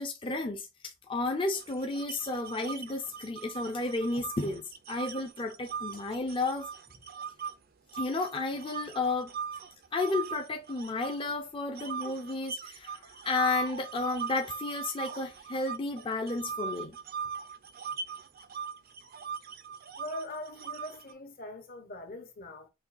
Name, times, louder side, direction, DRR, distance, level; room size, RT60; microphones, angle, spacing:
voice 1, 0.0-6.7 7.9-9.3 9.9-17.0, left 3 dB, 25° left, 0.6 m, -32 dB
sound 1, 1.5-7.5 7.9-11.3 11.7-21.1, right 6 dB, 50° right, 0.5 m, -40 dB
voice 2, 20.0-22.7, left 1 dB, 45° left, 0.9 m, -42 dB
6.1 x 2.2 x 2.6 m
head